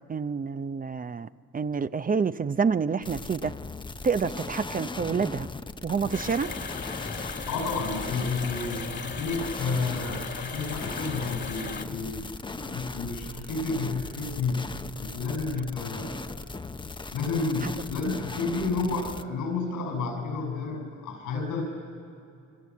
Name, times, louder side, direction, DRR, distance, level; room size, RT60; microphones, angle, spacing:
voice 1, 0.1-1.3 1.5-3.6 4.0-5.5 5.8-6.5 17.6-17.7, right 5 dB, 30° right, 12 dB, 0.6 m, -28 dB
sound 1, 3.0-19.2, left 3 dB, 15° left, 0.8 m, -38 dB
sound 2, 6.1-11.9, left 4 dB, 40° left, 1.9 m, -37 dB
voice 2, 7.5-16.4 17.1-21.6, left 4 dB, 85° left, 5 dB, 7.0 m, -31 dB
27.5 x 24.5 x 8.5 m, 2.6 s
cardioid pair, 90°, 30 cm